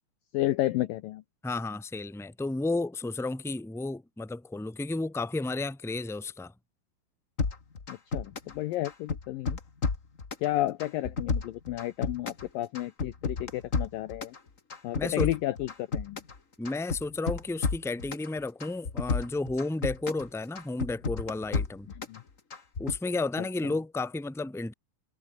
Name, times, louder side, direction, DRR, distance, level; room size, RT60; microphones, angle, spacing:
voice 1, 0.3-1.2 7.9-9.6 10.4-14.4 14.8-16.2 22.1-22.2, left 15 dB, 80° left, 2.0 m, -32 dB
voice 2, 1.4-6.5 15.0-15.3 16.6-21.9 22.8-24.7, left 2 dB, ahead, 1.8 m, -32 dB
sound 1, 7.4-8.6 8.8-10.5 10.8-12.5 12.7-14.4 14.7-16.4 16.7-18.3 18.6-20.3 20.6-22.2 22.5-23.0, left 4 dB, 35° left, 1.2 m, -31 dB
omnidirectional pair, 5.0 m